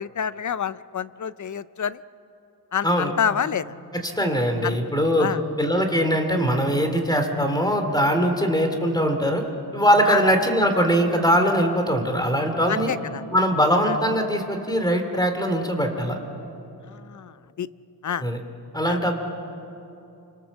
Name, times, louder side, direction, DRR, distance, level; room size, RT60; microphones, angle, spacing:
voice 1, 0.0-2.0 2.7-3.7 4.6-4.8 5.2-5.4 10.1-10.2 12.7-13.2 13.9-14.0 16.9-17.7 18.0-18.2 18.8-19.0, left 8 dB, 45° left, 16 dB, 0.6 m, -28 dB
voice 2, 3.9-5.3 5.6-9.4 9.7-12.9 13.3-16.2 18.2-18.4 18.7-19.2, equal, 10° left, 5 dB, 2.8 m, -21 dB
28.5 x 25.0 x 7.3 m, 2.8 s
wide cardioid pair, 115°, 41 cm